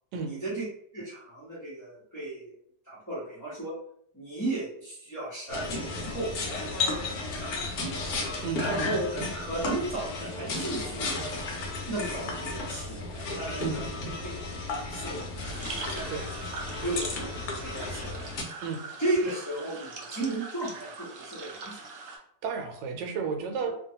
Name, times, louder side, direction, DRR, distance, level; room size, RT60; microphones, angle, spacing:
voice 1, 0.2-0.6 0.9-2.5 2.9-3.8 4.1-6.8 7.3-8.1 8.6-11.2 11.8-13.9 14.2-15.2 15.9-16.2 16.8-18.3 19.0-21.8, right 2 dB, 15° left, -9 dB, 0.6 m, -35 dB
sound 1, 5.5-18.4, left 3 dB, 70° left, 1.0 m, -33 dB
voice 2, 8.4-9.0 13.6-13.8 16.1-16.3 18.6-18.8 22.4-23.7, right 5 dB, 90° right, 3 dB, 1.2 m, -33 dB
sound 2, 15.4-22.2, right 4 dB, 65° right, 0.8 m, -42 dB
2.9 x 2.2 x 2.7 m, 0.69 s
omnidirectional pair, 1.9 m